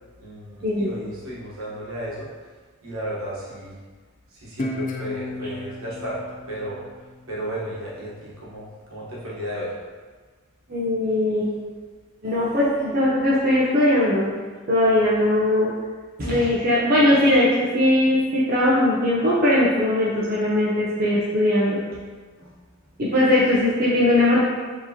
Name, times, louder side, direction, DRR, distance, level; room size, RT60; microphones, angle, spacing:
voice 1, 0.2-2.3 2.8-3.8 4.3-6.8 7.3-9.8 22.4-22.6 22.9-23.0, equal, 80° right, -6 dB, 1.2 m, -34 dB
Guitar, 4.6-7.8, left 2 dB, 40° left, 0.4 m, -34 dB
voice 2, 10.7-11.6 12.2-14.3 14.7-15.7 16.2-21.8 23.0-24.4, left 1 dB, 45° right, -7 dB, 0.7 m, -20 dB
4.5 x 3.0 x 2.8 m, 1.5 s
head